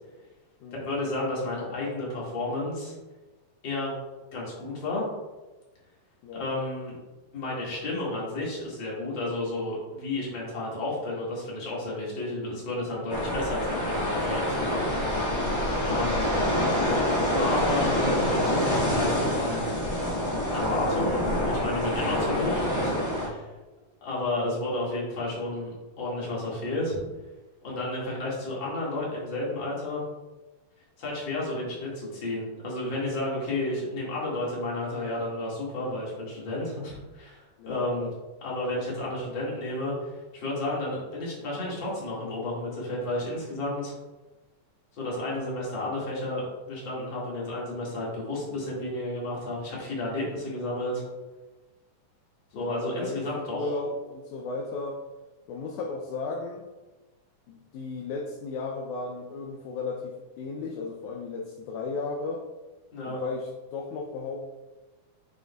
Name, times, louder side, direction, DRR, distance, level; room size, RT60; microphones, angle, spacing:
voice 1, 0.7-2.9 3.6-3.9 4.3-5.0 6.3-6.9 7.3-15.0 15.8-16.3 17.4-19.7 20.5-23.5 24.0-27.0 27.6-30.0 31.0-38.1 38.4-43.9 44.9-51.0 52.5-53.7 62.9-63.2, left 2 dB, 40° left, -5 dB, 2.3 m, -32 dB
sound 1, 13.1-23.3, left 1 dB, 20° left, 0.7 m, -26 dB
voice 2, 15.6-15.9 37.6-38.1 52.5-55.0 55.5-56.7 57.5-62.4 63.1-64.4, left 3 dB, 75° left, 1 dB, 1.9 m, -35 dB
7.3 x 6.3 x 2.3 m, 1.2 s
omnidirectional pair, 3.8 m